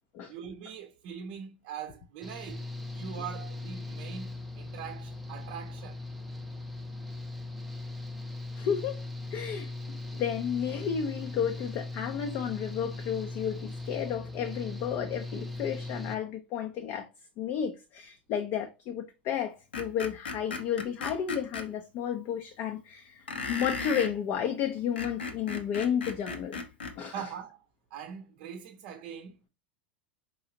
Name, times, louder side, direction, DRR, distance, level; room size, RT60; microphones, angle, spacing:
voice 1, 0.3-2.7 2.9-6.0 27.1-27.6 27.9-29.5, right 8 dB, 45° right, 0.6 m, -42 dB
Engine / Mechanical fan, 2.2-16.2, left 2 dB, ahead, 0.6 m, -39 dB
voice 2, 8.6-9.0 9.3-17.1 17.4-26.6 27.0-27.1, left 8 dB, 40° left, 0.6 m, -32 dB
Screech, 19.7-21.7 23.3-24.2 24.8-27.0, left 4 dB, 70° left, 0.8 m, -36 dB
4.7 x 3.0 x 2.7 m
figure-of-eight pair, 85°, 6 cm